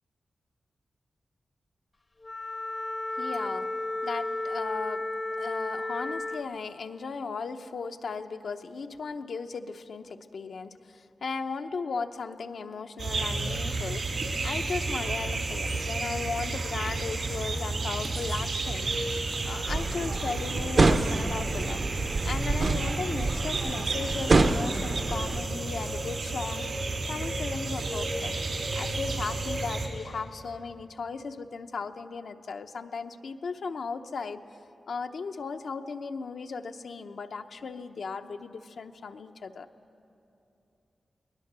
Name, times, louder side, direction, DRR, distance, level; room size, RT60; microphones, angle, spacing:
Wind instrument woodwind instrument, 2.2-6.5, left 2 dB, 35° left, 0.7 m, -33 dB
voice 1, 3.2-3.7 4.0-5.0 5.4-19.0 19.4-21.9 22.2-28.4 28.7-34.4 34.9-39.7, left 4 dB, 75° left, 7 dB, 0.8 m, -36 dB
sound 1, 13.0-29.9, right 3 dB, 75° right, 3.2 m, -31 dB
sound 2, 19.7-25.4, right 3 dB, 55° right, 0.8 m, -27 dB
23.0 x 19.5 x 6.7 m, 2.8 s
wide cardioid pair, 100°, 0 cm